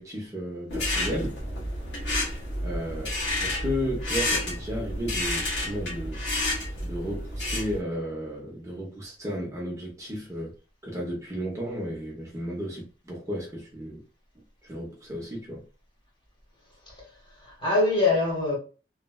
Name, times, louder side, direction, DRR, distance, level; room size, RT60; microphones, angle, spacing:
voice 1, 0.0-1.4 2.6-6.2 6.8-10.5 10.8-14.0 14.7-15.6, equal, 20° right, 0.8 m, -33 dB
sound 1, 0.7-7.8, left 1 dB, 80° left, 1.5 m, -30 dB
voice 2, 16.9-18.6, left 2 dB, 30° left, 1.3 m, -25 dB
3.1 x 2.4 x 2.3 m
head